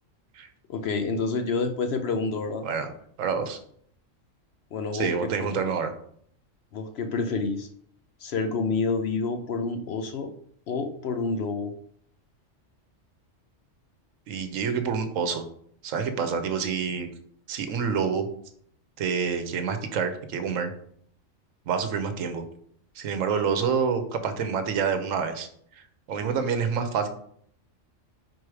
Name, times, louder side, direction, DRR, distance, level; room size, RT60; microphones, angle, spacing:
voice 1, 0.7-2.7 4.7-5.3 6.7-7.7 8.2-10.3 10.7-11.7, left 4 dB, 60° left, 7 dB, 0.8 m, -28 dB
voice 2, 3.2-3.6 4.9-5.9 14.3-15.4 15.8-17.1 17.5-18.3 19.0-20.7 21.7-22.4 23.0-25.5 26.1-27.1, right 6 dB, 80° right, 8 dB, 1.1 m, -27 dB
4.8 x 4.1 x 4.7 m, 0.63 s
omnidirectional pair, 1.3 m